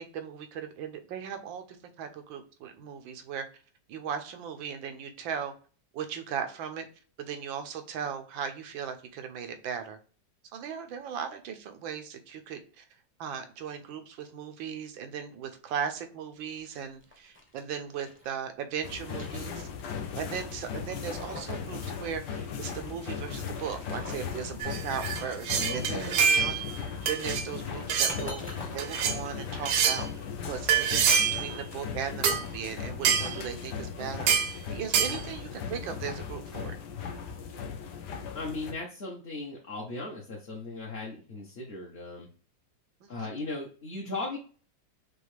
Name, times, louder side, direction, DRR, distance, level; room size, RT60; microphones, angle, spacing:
voice 1, 0.0-3.4 3.9-5.5 5.9-6.9 7.2-10.0 10.5-12.8 13.2-19.7 20.1-26.6 27.1-28.5 28.7-34.3 34.7-36.7 43.0-43.3, right 7 dB, 85° right, 7 dB, 1.5 m, -37 dB
sound 1, 16.5-18.3 18.8-20.0 20.3-20.4 20.9-21.7 22.0-22.1 23.3-24.4 26.3-30.4, left 1 dB, 10° left, 0.8 m, -46 dB
sound 2, 18.8-38.7, left 6 dB, 70° left, 1.2 m, -38 dB
sound 3, 24.6-26.7 27.1-27.5 27.9-28.2 28.8-29.2 29.7-30.0 30.7-31.5 32.2-32.4 33.1-33.4 34.3-34.5 34.9-35.2, right 7 dB, 70° right, 1.2 m, -25 dB
voice 2, 25.5-26.2 38.3-42.3 43.1-44.4, left 2 dB, 45° left, -3 dB, 0.9 m, -37 dB
6.2 x 2.5 x 3.2 m, 0.39 s
omnidirectional pair, 2.0 m